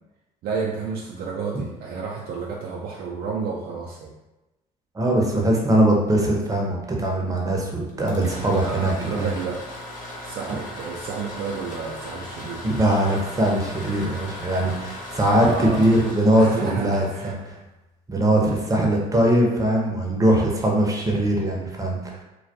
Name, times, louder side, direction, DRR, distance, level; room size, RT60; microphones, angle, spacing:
voice 1, 0.4-4.1 8.4-9.6 10.2-12.7 15.3-15.9 16.3-17.4, right 5 dB, 50° right, -3 dB, 0.4 m, -31 dB
voice 2, 4.9-9.3 12.6-17.6 18.1-22.2, right 1 dB, 15° right, -1 dB, 0.7 m, -21 dB
sound 1, 7.9-17.7, left 1 dB, 40° left, 0.8 m, -38 dB
2.2 x 2.2 x 2.7 m, 1.0 s
hypercardioid pair, 60°, 20 cm